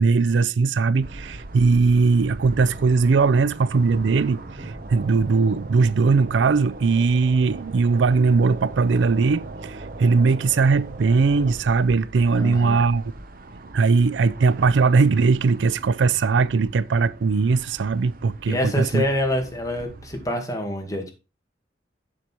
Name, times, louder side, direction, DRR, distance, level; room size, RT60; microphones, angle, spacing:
voice 1, 0.0-13.0 13.7-19.0, right 4 dB, 90° right, 0.4 m, -20 dB
sound 1, 1.0-20.3, right 2 dB, 50° right, 0.9 m, -39 dB
voice 2, 12.3-12.9 18.4-21.1, left 1 dB, 20° left, 1.9 m, -26 dB
7.6 x 6.8 x 4.5 m
head